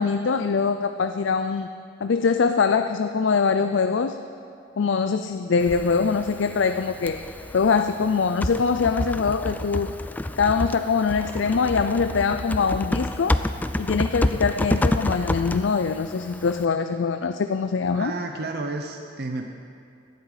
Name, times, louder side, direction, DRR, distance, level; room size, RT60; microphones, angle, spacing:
voice 1, 0.0-1.7 2.0-4.2 4.8-7.3 7.5-9.9 10.4-13.4 13.8-18.1, left 5 dB, 90° left, 9 dB, 0.5 m, -23 dB
Typing, 5.6-16.7, left 1 dB, 10° left, 0.3 m, -29 dB
voice 2, 18.0-19.5, right 2 dB, 55° right, 4 dB, 0.8 m, -31 dB
18.0 x 12.0 x 5.0 m, 2.5 s
head